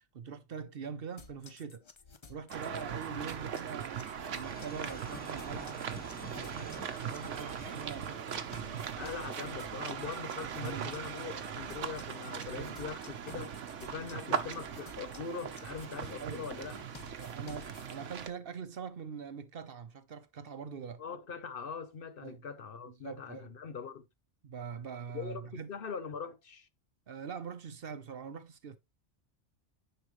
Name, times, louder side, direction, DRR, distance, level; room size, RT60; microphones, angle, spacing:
voice 1, 0.0-1.8 2.3-5.8 6.2-8.9 10.6-11.0 12.6-12.8 14.3-14.5 16.2-16.5 17.2-21.0 22.2-22.4 22.9-23.5 24.4-25.7 27.1-28.8, right 6 dB, 55° right, 0.9 m, -43 dB
sound 1, 1.2-18.0, left 4 dB, 35° left, 0.5 m, -54 dB
sound 2, 2.5-18.3, right 8 dB, 80° right, 1.2 m, -40 dB
sound 3, 4.4-8.9, left 1 dB, 10° left, 1.3 m, -51 dB
voice 2, 9.0-16.7 21.0-24.1 25.1-26.7, left 6 dB, 55° left, 0.8 m, -42 dB
9.8 x 5.2 x 3.1 m
omnidirectional pair, 1.2 m